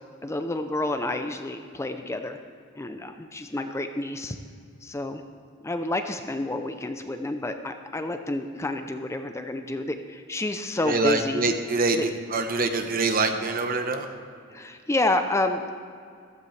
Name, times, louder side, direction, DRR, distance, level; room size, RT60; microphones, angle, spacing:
voice 1, 0.2-2.4 2.8-4.4 4.8-5.2 5.6-11.4 11.9-12.0 14.5-15.7, left 2 dB, 15° left, 7 dB, 0.5 m, -29 dB
voice 2, 10.8-14.1, right 3 dB, 45° right, 6 dB, 1.0 m, -25 dB
15.0 x 13.5 x 3.3 m, 2.3 s
head